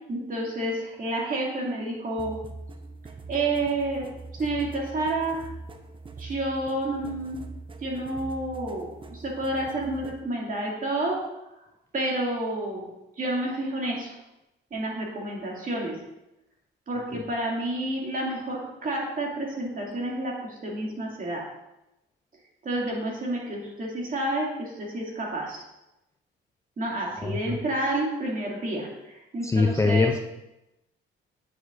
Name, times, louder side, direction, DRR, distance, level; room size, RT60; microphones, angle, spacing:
voice 1, 0.1-2.3 3.3-4.1 4.4-5.5 6.2-7.4 7.8-11.2 11.9-12.9 13.2-14.2 14.7-16.0 16.9-21.4 22.6-25.6 26.8-30.1, right 1 dB, 45° right, -3 dB, 2.3 m, -29 dB
sound 1, 2.2-10.2, right 3 dB, 25° right, 0.6 m, -42 dB
voice 2, 27.2-27.6 29.4-30.2, left 3 dB, 15° left, 4 dB, 0.5 m, -23 dB
9.5 x 5.8 x 2.5 m, 0.92 s
cardioid pair, 90°, 20 cm